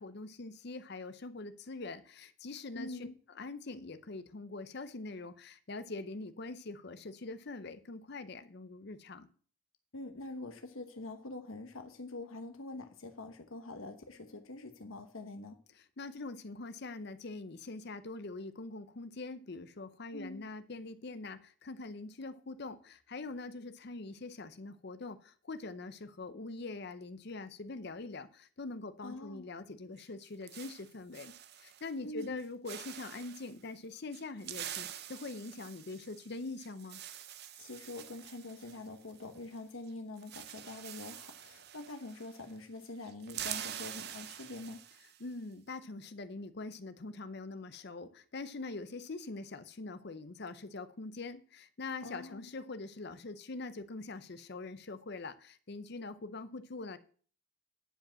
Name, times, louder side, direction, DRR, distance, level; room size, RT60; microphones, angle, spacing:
voice 1, 0.0-3.1 3.4-9.3 16.0-37.0 45.2-57.0, left 3 dB, 55° left, 0.7 m, -43 dB
voice 2, 2.7-3.2 9.9-15.6 20.1-20.5 29.0-29.5 32.0-32.4 37.6-44.8 52.0-52.5, left 2 dB, 80° left, 1.1 m, -45 dB
sound 1, 30.0-31.9 32.2-32.4 32.7-33.5 34.1-39.6 39.8-39.9 40.2-42.6 42.8-45.2, right 10 dB, 50° right, 0.7 m, -46 dB
10.0 x 5.1 x 7.5 m
head